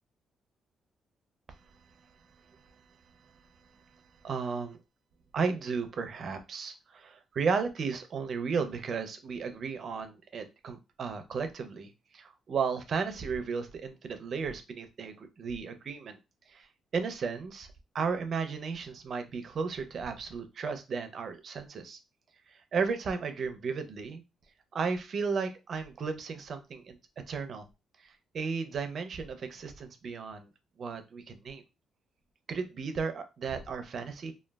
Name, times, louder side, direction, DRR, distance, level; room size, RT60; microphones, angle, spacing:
voice 1, 3.7-4.8 5.3-16.2 16.5-17.7 17.9-22.0 22.5-24.2 24.7-27.0 27.3-27.7 28.0-30.5 30.8-31.6 32.5-34.3, right 5 dB, 45° right, 8 dB, 0.4 m, -34 dB
3.0 x 2.1 x 2.2 m, 0.26 s
cardioid pair, 160°, 0 cm